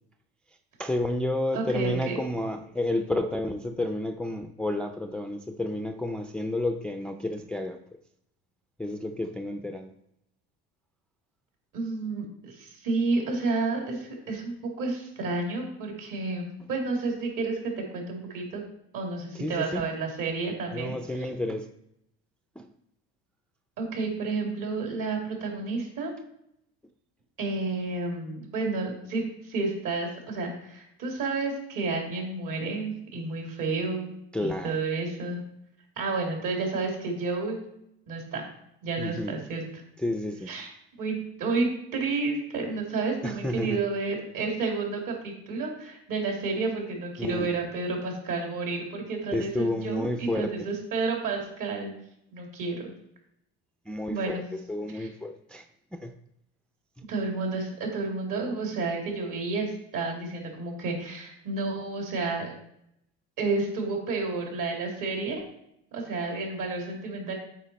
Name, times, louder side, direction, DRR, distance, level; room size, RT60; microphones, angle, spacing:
voice 1, 0.8-7.8 8.8-9.9 19.3-19.8 20.7-21.7 22.6-22.7 34.3-34.8 39.0-39.3 40.0-40.5 43.2-43.8 47.2-47.5 49.3-50.7 53.9-54.4 54.7-55.6 55.9-56.1, left 1 dB, 5° left, 6 dB, 0.4 m, -30 dB
voice 2, 1.5-2.1 11.7-18.6 18.9-21.3 23.8-26.1 27.4-34.1 34.4-35.4 36.0-37.6 38.1-38.4 38.8-39.8 40.5-40.7 41.0-51.9 52.3-52.9 54.1-54.5 54.9-55.1 57.1-62.5 63.4-65.4 65.9-67.4, right 3 dB, 60° right, 1 dB, 2.5 m, -31 dB
8.4 x 4.5 x 4.1 m, 0.77 s
supercardioid pair, 95°, 37 cm